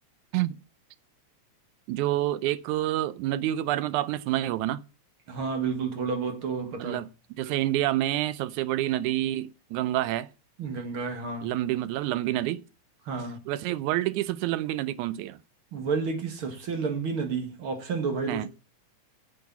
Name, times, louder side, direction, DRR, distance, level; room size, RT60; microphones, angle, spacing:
voice 1, 1.9-4.8 6.8-7.1 7.4-10.3 11.4-12.7 13.5-15.4 18.3-18.5, right 14 dB, 90° right, 2.1 m, -28 dB
voice 2, 5.3-7.0 10.6-11.5 13.1-13.4 15.7-18.5, right 5 dB, 50° right, 2.3 m, -30 dB
10.0 x 6.6 x 7.0 m
omnidirectional pair, 3.4 m